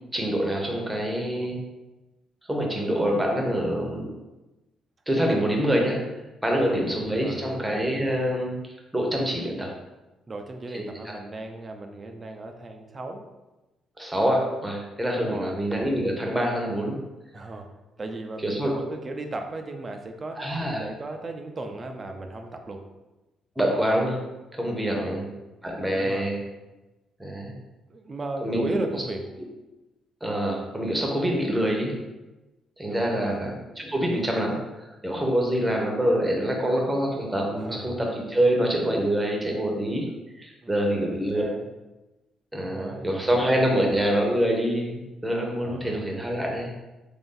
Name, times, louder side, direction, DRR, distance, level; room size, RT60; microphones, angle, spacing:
voice 1, 0.1-1.6 2.4-4.0 5.1-6.0 6.4-8.5 8.9-9.7 10.7-11.1 14.0-17.0 18.4-18.7 20.4-20.9 23.6-24.2 24.6-25.2 25.6-26.4 27.2-27.5 28.4-28.8 30.2-31.9 32.8-40.1 40.3-41.4 42.5-46.7, equal, 10° right, 0 dB, 0.9 m, -25 dB
voice 2, 7.2-7.6 10.3-13.3 15.3-15.6 17.3-17.7 18.0-22.8 24.9-25.2 25.9-26.3 27.9-29.3 32.8-33.4 37.6-37.9 40.6-41.1 41.3-41.7 42.5-43.8 45.6-46.1, right 2 dB, 30° right, 5 dB, 0.5 m, -36 dB
3.4 x 2.6 x 3.8 m, 1.1 s
cardioid pair, 90°, 0 cm